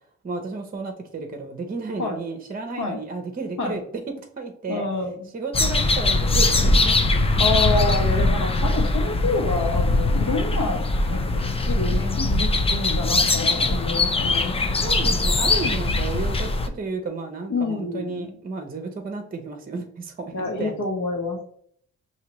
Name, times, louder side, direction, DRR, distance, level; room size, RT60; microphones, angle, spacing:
voice 1, 0.2-3.8 4.4-4.9 5.3-7.2 14.8-20.7, right 3 dB, 30° right, 5 dB, 0.7 m, -32 dB
voice 2, 4.7-5.3 7.4-14.5 17.5-18.3 20.3-21.4, left 3 dB, 70° left, 0 dB, 1.4 m, -28 dB
sound 1, 5.5-16.7, left 2 dB, 20° left, 0.5 m, -21 dB
5.7 x 2.8 x 3.0 m, 0.63 s
cardioid pair, 90°, 30 cm